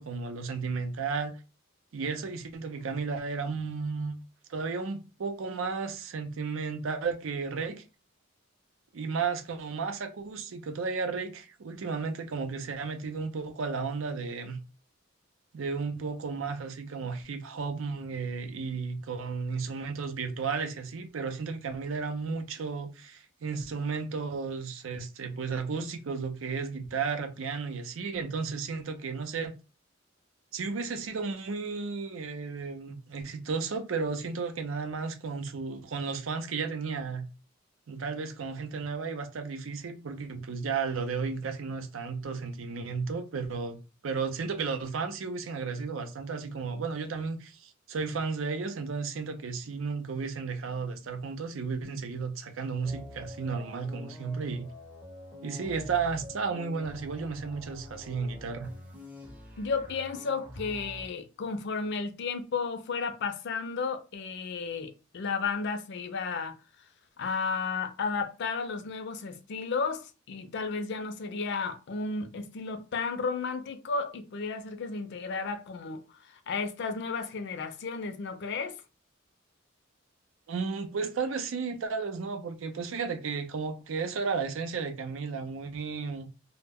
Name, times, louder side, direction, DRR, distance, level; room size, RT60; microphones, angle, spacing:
voice 1, 0.0-1.3 1.9-4.1 4.5-7.8 8.9-14.6 15.5-29.5 30.5-37.3 37.9-54.7 55.4-58.7 80.5-86.5, right 5 dB, 80° right, 0.5 m, -33 dB
sound 1, 52.8-61.1, left 1 dB, 10° right, 0.6 m, -46 dB
voice 2, 59.6-66.5 67.2-78.8, left 4 dB, 60° left, 0.4 m, -33 dB
2.1 x 2.0 x 3.4 m
head